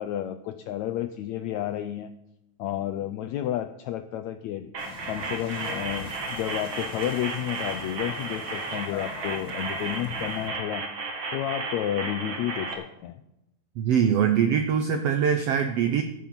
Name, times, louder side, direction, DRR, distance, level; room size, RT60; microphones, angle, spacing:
voice 1, 0.0-2.1 2.6-4.7 5.1-10.9 11.3-13.2, left 12 dB, 80° left, 8 dB, 1.6 m, -31 dB
sound 1, 4.7-12.7, right 3 dB, 50° right, 2.6 m, -34 dB
sound 2, 4.8-10.5, left 4 dB, 40° left, 2.0 m, -45 dB
sound 3, 5.6-6.7 8.9-9.8, left 8 dB, 60° left, 2.8 m, -44 dB
voice 2, 13.8-16.0, right 8 dB, 85° right, 7 dB, 1.4 m, -23 dB
14.0 x 7.6 x 7.1 m, 0.86 s
omnidirectional pair, 3.9 m